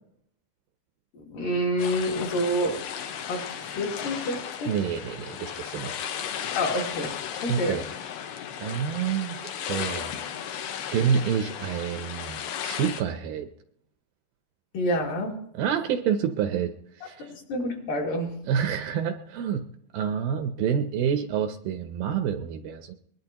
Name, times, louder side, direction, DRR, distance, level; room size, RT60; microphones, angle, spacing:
voice 1, 1.1-2.8 3.3-4.8 6.6-7.2 7.4-7.9 14.7-15.3 17.3-18.3, equal, 60° left, -1 dB, 3.6 m, -28 dB
sound 1, 1.8-13.0, left 9 dB, 80° left, 3.0 m, -35 dB
voice 2, 4.7-6.0 7.5-7.8 8.6-10.1 10.9-13.5 15.5-16.7 17.0-17.3 18.5-19.6 19.9-22.9, right 8 dB, 75° right, 7 dB, 2.3 m, -28 dB
23.0 x 20.0 x 2.9 m, 0.71 s
omnidirectional pair, 4.6 m